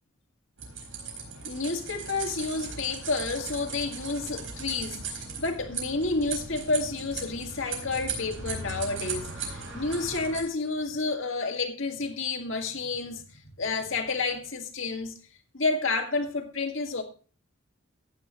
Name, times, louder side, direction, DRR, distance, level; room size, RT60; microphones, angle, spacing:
sound 1, 0.6-10.4, right 4 dB, 75° right, 4.4 m, -37 dB
voice 1, 1.4-15.2 15.5-17.0, left 3 dB, 75° left, 1.9 m, -30 dB
15.0 x 9.2 x 3.0 m
head